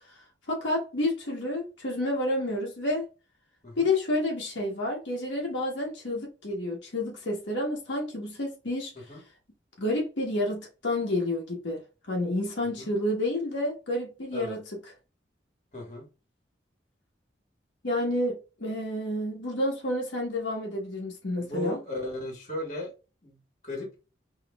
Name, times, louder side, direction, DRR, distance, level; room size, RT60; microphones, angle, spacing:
voice 1, 0.5-3.0 3.8-8.9 9.8-11.8 12.1-14.6 17.8-21.8, left 1 dB, 75° left, 1.2 m, -29 dB
voice 2, 15.7-16.1 21.4-22.9 23.2-23.4 23.6-23.9, left 1 dB, 40° left, 1.6 m, -35 dB
6.0 x 3.1 x 2.3 m
head